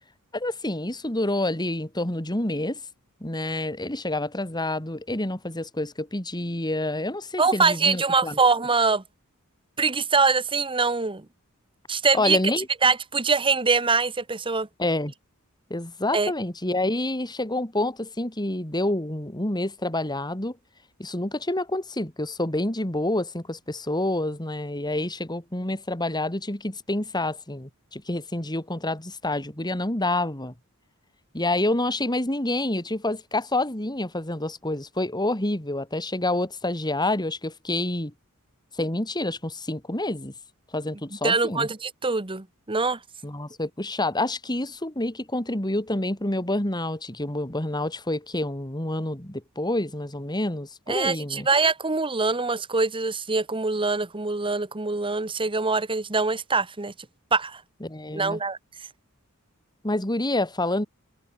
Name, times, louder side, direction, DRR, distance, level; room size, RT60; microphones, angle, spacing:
voice 1, 0.3-2.8 3.2-8.4 12.1-12.7 14.8-15.1 15.7-20.6 21.0-30.5 31.3-38.1 38.8-40.3 40.7-41.7 43.2-51.5 57.8-58.4 59.8-60.9, left 1 dB, 20° left, 3.3 m, -28 dB
voice 2, 7.4-9.0 9.8-11.2 11.9-12.4 12.8-14.7 16.1-16.3 41.2-43.0 50.9-56.9 57.3-57.6 58.1-58.6, right 4 dB, 25° right, 1.3 m, -23 dB
head